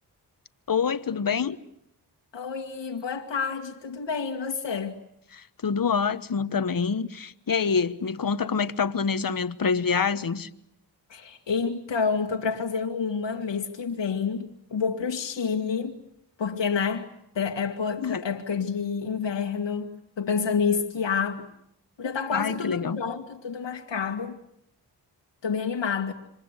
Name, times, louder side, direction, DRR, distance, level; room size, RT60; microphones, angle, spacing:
voice 1, 0.7-1.6 5.3-10.5 18.0-18.2 22.3-23.0, left 6 dB, 50° left, 1.4 m, -26 dB
voice 2, 2.3-5.0 11.1-15.9 16.4-17.1 17.3-21.5 22.0-24.4 25.4-26.1, left 6 dB, 80° left, 2.0 m, -28 dB
27.5 x 25.0 x 8.3 m
cardioid pair, 55°, 43 cm